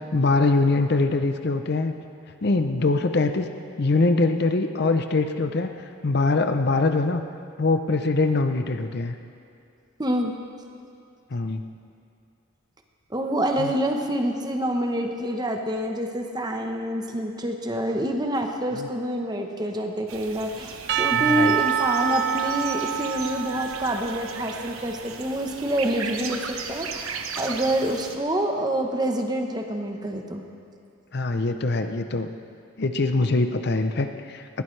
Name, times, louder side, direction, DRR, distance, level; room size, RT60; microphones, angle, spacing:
voice 1, 0.1-2.0 2.4-3.5 3.8-5.7 6.0-7.2 7.6-9.2 11.3-11.6 13.6-13.7 18.8-18.9 21.1-21.5 31.1-32.3 32.8-34.6, left 3 dB, 50° left, 7 dB, 0.6 m, -23 dB
voice 2, 10.0-10.3 13.1-30.4, right 1 dB, 20° right, 3 dB, 1.0 m, -27 dB
sound 1, 20.1-28.2, right 5 dB, 85° right, 1.1 m, -36 dB
Percussion / Church bell, 20.9-25.1, right 9 dB, 50° right, 0.5 m, -26 dB
20.0 x 15.5 x 3.3 m, 2.5 s
head